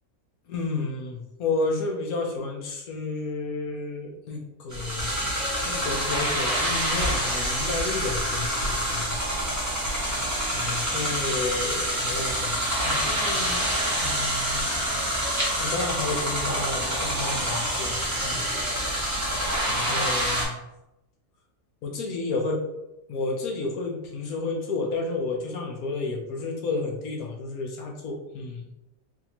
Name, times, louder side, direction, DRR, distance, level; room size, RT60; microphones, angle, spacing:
voice 1, 0.5-5.2 5.7-9.2 10.5-13.6 14.0-14.8 15.6-18.6 19.7-20.6 21.8-22.6 23.1-28.7, left 3 dB, 75° left, 1 dB, 1.2 m, -31 dB
sound 1, 4.7-20.4, equal, 15° right, 0.8 m, -27 dB
4.0 x 2.7 x 2.8 m, 0.91 s
omnidirectional pair, 1.6 m